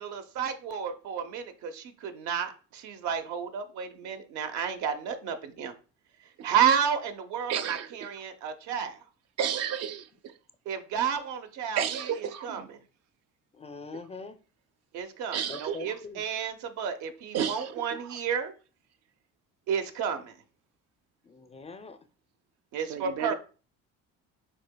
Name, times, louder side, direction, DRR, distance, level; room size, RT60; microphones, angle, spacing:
voice 1, 0.0-5.7 6.4-9.0 10.7-11.8 12.4-12.6 14.9-18.5 19.7-20.3 22.7-23.3, right 7 dB, 75° right, 0.8 m, -31 dB
voice 2, 7.5-8.1 9.4-10.3 11.8-12.7 15.3-16.0 17.3-18.2 22.9-23.3, right 8 dB, 55° right, 0.5 m, -32 dB
voice 3, 13.5-14.4 15.5-16.2 21.2-22.0, left 3 dB, 20° left, 0.4 m, -42 dB
7.5 x 2.8 x 2.2 m
cardioid pair, 95°, 30 cm